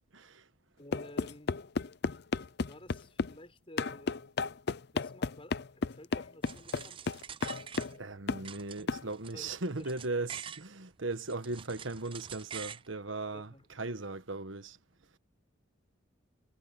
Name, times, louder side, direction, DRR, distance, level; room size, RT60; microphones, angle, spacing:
voice 1, 0.1-0.5 7.9-14.8, right 3 dB, 80° right, 1.4 m, -38 dB
voice 2, 0.8-1.6 2.6-4.2 4.9-7.2 9.3-9.5 9.8-9.9 13.3-13.7, left 1 dB, 30° left, 5.9 m, -52 dB
sound 1, 0.9-3.4 3.8-8.0 8.3-8.5 8.9-9.1, left 4 dB, 55° left, 0.6 m, -33 dB
sound 2, 6.4-8.2 8.4-10.7 11.1-12.9, right 8 dB, 25° right, 0.5 m, -46 dB
head